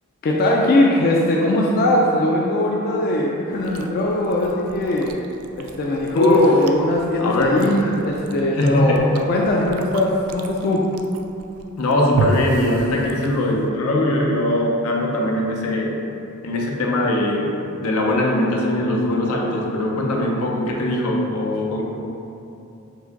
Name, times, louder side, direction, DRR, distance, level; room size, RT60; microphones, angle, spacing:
voice 1, 0.2-5.1 5.6-10.9, left 1 dB, 45° left, -2 dB, 0.3 m, -20 dB
Chewing mastication, 3.5-13.7, right 3 dB, 85° right, 0.3 m, -33 dB
voice 2, 6.1-6.5 7.2-7.9 8.5-9.1 11.8-15.9 16.4-17.5 17.8-21.8, left 1 dB, 90° left, -1 dB, 0.6 m, -21 dB
4.7 x 2.2 x 3.9 m, 2.8 s
head